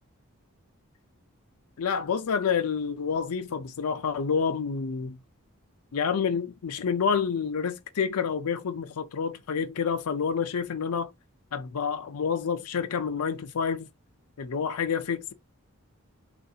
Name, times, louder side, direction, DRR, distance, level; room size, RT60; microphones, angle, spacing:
voice 1, 1.8-5.2 5.9-11.1 11.5-13.9 14.4-15.3, left 6 dB, 85° left, 0.5 m, -28 dB
3.1 x 2.5 x 2.7 m
head